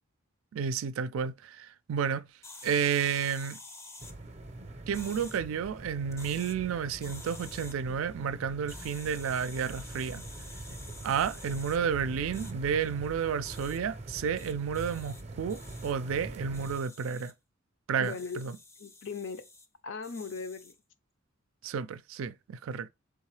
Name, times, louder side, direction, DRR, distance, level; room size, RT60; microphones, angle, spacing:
voice 1, 0.5-2.3 2.6-3.6 4.9-10.2 11.0-17.3 17.9-18.6 21.6-22.9, right 7 dB, 80° right, 0.4 m, -31 dB
sound 1, 2.4-4.1 4.9-5.4 6.1-6.6 7.0-7.7 8.7-11.8 12.3-12.5 13.4-13.8 14.4-15.2 15.5-15.9 16.5-17.3 18.0-19.7 20.0-20.8, left 3 dB, 15° left, 0.5 m, -49 dB
sound 2, 4.0-16.8, right 2 dB, 35° right, 0.5 m, -44 dB
voice 2, 18.0-18.4 18.8-19.5 19.8-20.7, left 5 dB, 65° left, 0.5 m, -38 dB
3.7 x 3.5 x 3.1 m
head